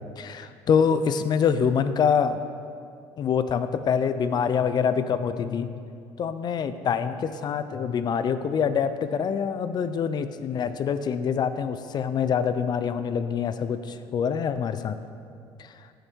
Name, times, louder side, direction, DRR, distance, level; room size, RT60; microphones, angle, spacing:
voice 1, 0.2-2.4 3.2-5.7 6.2-15.0 15.6-15.7, left 7 dB, 45° left, 11 dB, 0.6 m, -25 dB
14.5 x 6.6 x 4.6 m, 2.3 s
supercardioid pair, 95°, 10 cm